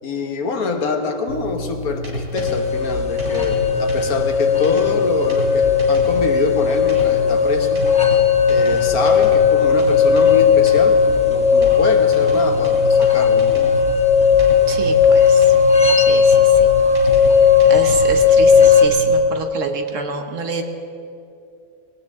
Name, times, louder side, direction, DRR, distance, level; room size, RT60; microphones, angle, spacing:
voice 1, 0.0-7.8 8.5-13.7, left 3 dB, 70° left, 5 dB, 1.7 m, -25 dB
sound 1, 1.3-19.2, equal, 80° right, 3.9 m, -29 dB
sound 2, 2.4-18.9, left 7 dB, 5° left, 1.2 m, -15 dB
voice 2, 14.7-15.5 15.9-16.7 17.7-20.6, right 4 dB, 55° right, 5 dB, 1.3 m, -28 dB
20.0 x 18.5 x 3.6 m, 2.5 s
omnidirectional pair, 1.6 m